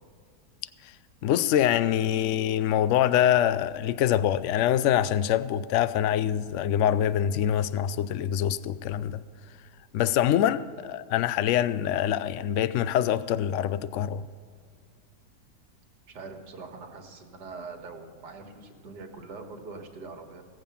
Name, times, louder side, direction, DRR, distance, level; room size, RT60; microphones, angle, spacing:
voice 1, 1.2-9.2 9.9-14.3, left 10 dB, 75° left, 15 dB, 0.7 m, -25 dB
voice 2, 16.1-20.4, right 4 dB, 85° right, 4 dB, 2.0 m, -43 dB
17.0 x 7.4 x 7.0 m, 2.2 s
omnidirectional pair, 1.8 m